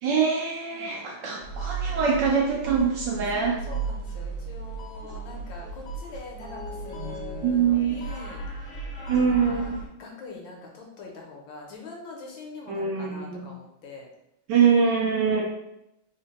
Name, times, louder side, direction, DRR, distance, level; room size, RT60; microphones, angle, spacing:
voice 1, 0.0-3.6 7.4-8.1 9.1-9.9 12.7-13.5 14.5-15.4, right 6 dB, 75° right, -1 dB, 1.1 m, -24 dB
sound 1, 1.4-9.9, right 4 dB, 45° left, 0.8 m, -35 dB
voice 2, 3.3-8.4 9.5-9.7 10.0-14.1, left 3 dB, 70° left, -1 dB, 1.3 m, -43 dB
3.7 x 2.1 x 3.9 m, 0.85 s
omnidirectional pair, 2.3 m